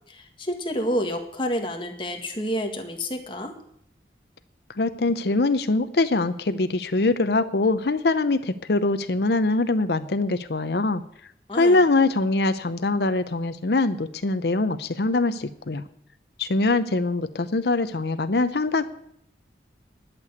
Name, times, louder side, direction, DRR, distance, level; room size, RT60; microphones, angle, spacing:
voice 1, 0.1-3.5 11.5-11.8, equal, 30° left, 4 dB, 1.8 m, -29 dB
voice 2, 4.8-11.0 11.5-15.8 16.4-18.8, left 2 dB, 65° left, 10 dB, 0.7 m, -23 dB
11.5 x 6.9 x 9.6 m, 0.71 s
head